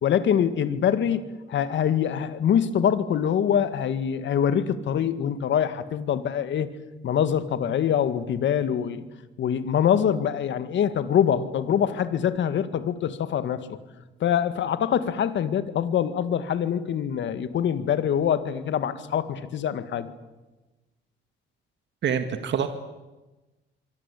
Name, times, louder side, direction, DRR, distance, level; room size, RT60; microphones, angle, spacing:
voice 1, 0.0-6.7 7.0-9.0 9.4-13.8 14.2-20.1, left 9 dB, 70° left, 12 dB, 2.1 m, -24 dB
voice 2, 22.0-22.7, right 8 dB, 65° right, 8 dB, 2.0 m, -25 dB
25.5 x 24.0 x 8.6 m, 1.1 s
cardioid pair, 90°, 20 cm